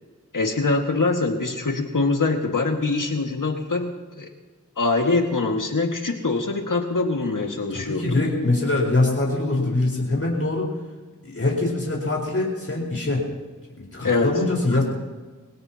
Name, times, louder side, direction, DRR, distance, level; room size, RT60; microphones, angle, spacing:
voice 1, 0.3-4.3 4.8-8.1 14.0-14.3, left 3 dB, 75° left, 3 dB, 2.0 m, -23 dB
voice 2, 7.7-10.7 11.2-13.3 13.8-14.8, left 2 dB, 45° left, -3 dB, 4.6 m, -23 dB
23.5 x 17.5 x 2.9 m, 1.4 s
wide cardioid pair, 40°, 32 cm